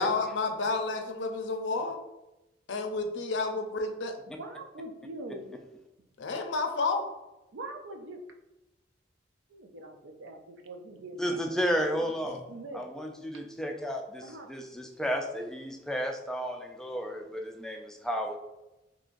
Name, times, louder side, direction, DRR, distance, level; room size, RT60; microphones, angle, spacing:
voice 1, 0.0-2.0 2.7-4.1 6.2-7.1, left 3 dB, 75° left, 5 dB, 0.5 m, -30 dB
voice 2, 4.4-5.6 7.5-8.2 9.5-11.8 12.5-12.8 14.2-14.5, right 2 dB, 80° right, 4 dB, 0.5 m, -43 dB
voice 3, 11.2-12.4 12.7-18.4, equal, 5° left, 2 dB, 0.3 m, -32 dB
3.7 x 2.9 x 2.5 m, 0.98 s
head